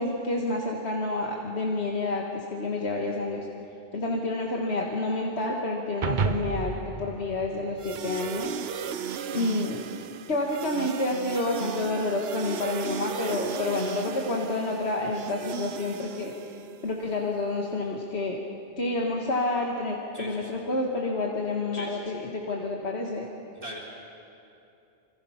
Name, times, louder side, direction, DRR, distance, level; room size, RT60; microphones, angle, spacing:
voice 1, 0.0-3.5 3.9-8.6 9.3-9.8 10.3-16.3 16.8-18.4 18.8-23.3, left 2 dB, 85° left, -1 dB, 2.0 m, -29 dB
sound 1, 6.0-8.5, right 5 dB, 50° right, 1.0 m, -31 dB
sound 2, 7.8-16.9, right 8 dB, 75° right, 0.9 m, -36 dB
voice 2, 20.1-20.6 23.5-23.8, equal, 35° right, -7 dB, 3.7 m, -40 dB
27.0 x 25.5 x 5.8 m, 2.7 s
omnidirectional pair, 1.1 m